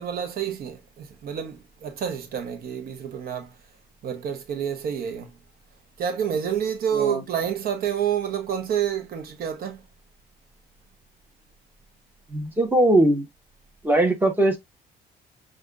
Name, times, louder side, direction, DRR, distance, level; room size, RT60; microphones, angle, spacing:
voice 1, 0.0-3.5 4.0-5.3 6.0-9.8, right 8 dB, 60° right, 1.0 m, -28 dB
voice 2, 6.9-7.2 12.3-13.2 13.8-14.6, right 1 dB, 10° right, 1.3 m, -20 dB
6.3 x 2.5 x 2.4 m
cardioid pair, 110°, 17 cm